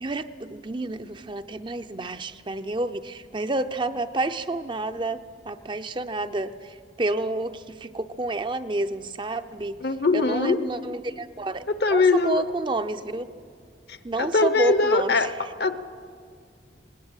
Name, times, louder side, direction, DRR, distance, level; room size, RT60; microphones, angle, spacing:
voice 1, 0.0-9.8 10.1-11.6 11.9-13.3 14.0-15.3, right 2 dB, 25° right, 9 dB, 0.5 m, -29 dB
voice 2, 9.8-10.6 11.8-12.5 13.9-15.3 15.6-15.7, left 3 dB, 60° left, 12 dB, 0.9 m, -22 dB
19.5 x 18.5 x 8.9 m, 2.2 s
head